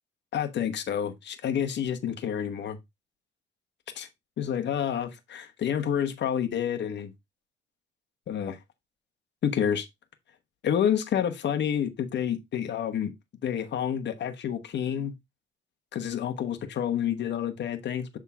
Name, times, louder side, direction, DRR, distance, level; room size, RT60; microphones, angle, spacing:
voice 1, 0.3-2.8 3.9-4.1 4.4-7.1 8.3-8.6 9.4-9.9 10.6-13.1 13.4-15.1 15.9-18.2, left 9 dB, 60° left, 1.2 m, -29 dB
7.2 x 3.7 x 3.5 m
cardioid pair, 90°, 20 cm